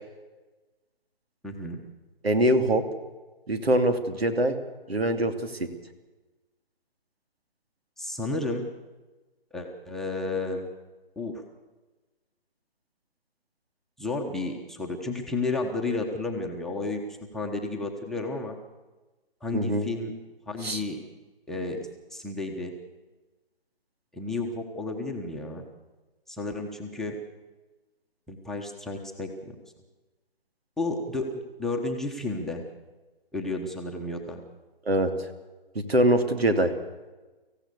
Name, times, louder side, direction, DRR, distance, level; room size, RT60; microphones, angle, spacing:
voice 1, 1.4-1.8 8.0-8.7 9.5-10.7 11.2-11.4 14.0-17.0 17.3-18.6 19.4-20.1 20.5-21.0 21.5-21.8 22.1-22.7 24.1-25.6 26.3-27.1 28.3-29.6 30.8-32.6 33.3-34.4, left 2 dB, ahead, -1 dB, 1.2 m, -32 dB
voice 2, 2.2-2.8 3.5-4.6 4.9-5.5 19.5-19.9 20.6-20.8 34.9-35.1 35.9-36.7, right 1 dB, 85° right, 8 dB, 2.9 m, -23 dB
25.5 x 15.5 x 6.9 m, 1.2 s
hypercardioid pair, 150°, 30 cm